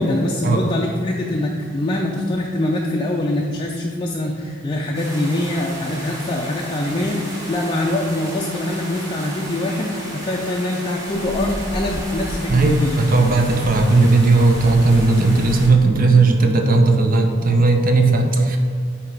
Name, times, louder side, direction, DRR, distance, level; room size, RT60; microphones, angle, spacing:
voice 1, 0.0-13.0, left 1 dB, 25° left, -1 dB, 0.4 m, -23 dB
sound 1, 4.9-15.7, equal, 15° right, 1.4 m, -32 dB
voice 2, 12.5-18.6, right 3 dB, 45° right, 3 dB, 0.7 m, -16 dB
8.6 x 2.9 x 4.6 m, 2.1 s
head